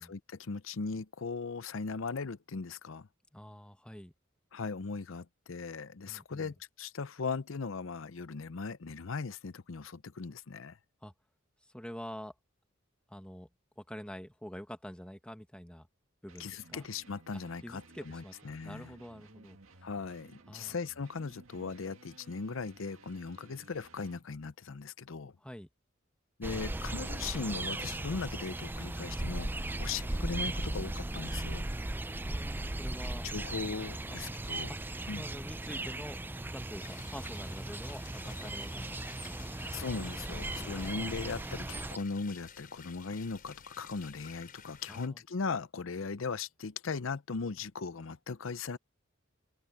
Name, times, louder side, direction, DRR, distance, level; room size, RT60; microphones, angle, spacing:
voice 1, 0.0-3.1 4.5-10.8 16.4-18.9 19.8-25.3 26.4-31.6 33.2-34.7 35.1-35.3 39.7-48.8, left 4 dB, 70° left, 0.7 m, -38 dB
voice 2, 3.3-4.1 6.1-6.5 11.0-11.1 11.7-12.3 13.1-13.5 13.8-15.9 16.2-16.9 17.6-19.6 20.5-20.8 25.4-25.7 29.6-29.9 32.2-33.3 34.0-34.2 34.7-34.8 35.0-36.2 36.5-39.7 40.2-40.9 44.9-45.2, equal, 5° left, 1.6 m, -47 dB
sound 1, 16.3-24.2, right 3 dB, 85° right, 2.0 m, -58 dB
sound 2, 26.4-42.0, right 2 dB, 10° right, 0.4 m, -37 dB
sound 3, 36.8-45.1, left 6 dB, 45° left, 5.2 m, -53 dB
open air
head